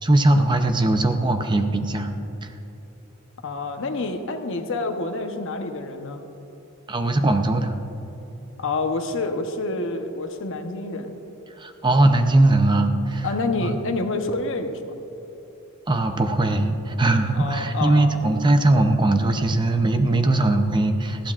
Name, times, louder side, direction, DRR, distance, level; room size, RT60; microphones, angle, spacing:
voice 1, 0.0-2.1 2.4-2.5 6.9-7.7 11.6-13.3 13.6-13.8 15.9-21.3, right 2 dB, 20° right, 7 dB, 0.6 m, -20 dB
voice 2, 3.4-6.2 8.6-11.1 13.2-14.9 17.3-18.1, left 3 dB, 65° left, 5 dB, 0.9 m, -28 dB
19.0 x 14.5 x 2.4 m, 3.0 s
head